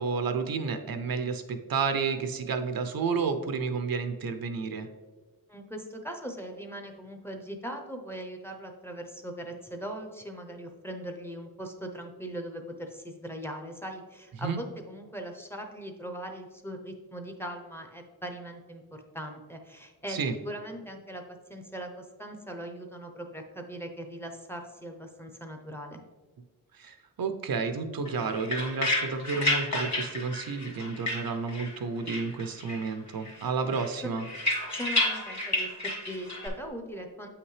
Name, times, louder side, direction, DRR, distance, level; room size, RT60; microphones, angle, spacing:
voice 1, 0.0-4.9 14.4-14.6 20.1-20.3 26.7-34.3, right 5 dB, 65° right, 8 dB, 0.6 m, -31 dB
voice 2, 5.5-20.2 20.4-21.2 21.5-26.0 34.0-34.1 34.7-37.3, right 1 dB, 5° left, 3 dB, 0.6 m, -40 dB
sound 1, 28.1-31.8 32.1-32.9 33.2-36.5, left 1 dB, 45° left, 1.9 m, -31 dB
7.9 x 5.8 x 3.2 m, 1.3 s
wide cardioid pair, 130°, 37 cm